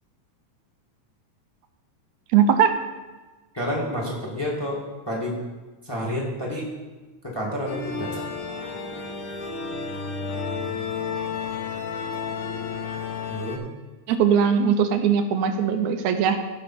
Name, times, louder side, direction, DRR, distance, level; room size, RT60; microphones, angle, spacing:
voice 1, 2.3-2.7 14.1-16.4, right 7 dB, 80° right, 7 dB, 2.1 m, -20 dB
voice 2, 3.5-5.4 5.8-6.7 7.2-8.2 13.3-13.6, equal, 10° left, -3 dB, 1.4 m, -29 dB
sound 1, 7.7-13.6, left 5 dB, 75° left, 1.2 m, -31 dB
15.5 x 5.7 x 4.3 m, 1.2 s
omnidirectional pair, 3.4 m